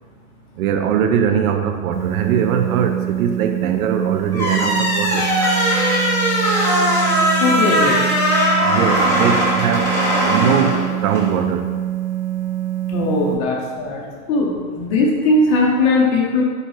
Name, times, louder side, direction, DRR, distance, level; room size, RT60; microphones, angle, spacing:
voice 1, 0.6-5.3 8.6-11.7, right 8 dB, 75° right, 6 dB, 0.6 m, -21 dB
sound 1, 1.9-13.3, right 13 dB, 25° right, 0.4 m, -25 dB
sound 2, 4.3-11.3, equal, 5° left, 1.0 m, -19 dB
voice 2, 7.4-8.0 12.9-14.0 14.3-16.4, left 2 dB, 45° left, -2 dB, 0.7 m, -18 dB
4.4 x 2.8 x 3.1 m, 1.5 s
hypercardioid pair, 125°, 44 cm